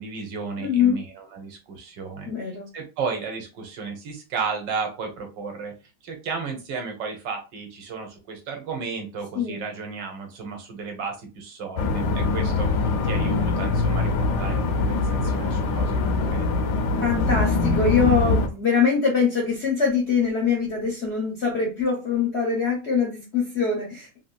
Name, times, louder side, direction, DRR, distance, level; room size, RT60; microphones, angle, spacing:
voice 1, 0.0-2.3 2.7-5.7 6.0-16.5, right 5 dB, 70° right, 3 dB, 1.4 m, -33 dB
voice 2, 0.6-1.0 2.2-2.6 9.3-9.6 17.0-24.2, left 5 dB, 55° left, -2 dB, 0.8 m, -23 dB
sound 1, 11.8-18.5, left 3 dB, 70° left, 1.1 m, -23 dB
3.3 x 2.7 x 2.2 m, 0.30 s
omnidirectional pair, 2.1 m